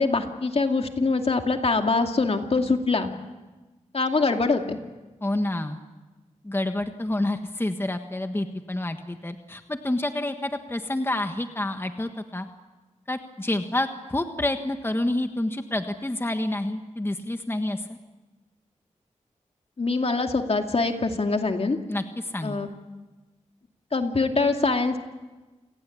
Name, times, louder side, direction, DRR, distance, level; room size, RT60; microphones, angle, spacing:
voice 1, 0.0-3.1 3.9-4.8 19.8-21.8 22.4-22.7 23.9-25.0, left 3 dB, 55° left, 4 dB, 2.4 m, -24 dB
voice 2, 5.2-5.8 6.4-12.5 13.1-18.0 21.9-22.6, left 1 dB, 20° left, 6 dB, 1.5 m, -28 dB
29.0 x 18.5 x 8.6 m, 1.2 s
wide cardioid pair, 70°, 12 cm